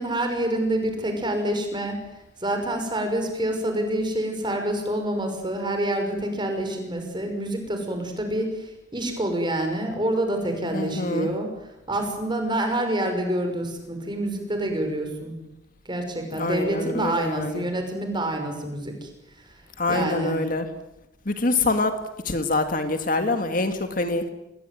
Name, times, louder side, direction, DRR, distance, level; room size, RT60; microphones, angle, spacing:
voice 1, 0.0-2.0 2.4-11.5 11.9-15.3 15.9-19.1 19.9-20.4, right 1 dB, 25° right, 5 dB, 5.9 m, -27 dB
voice 2, 10.7-11.3 16.3-17.7 19.8-20.7 21.3-22.0 22.3-24.3, left 2 dB, 45° left, 7 dB, 2.1 m, -25 dB
28.5 x 20.5 x 9.5 m, 0.88 s
head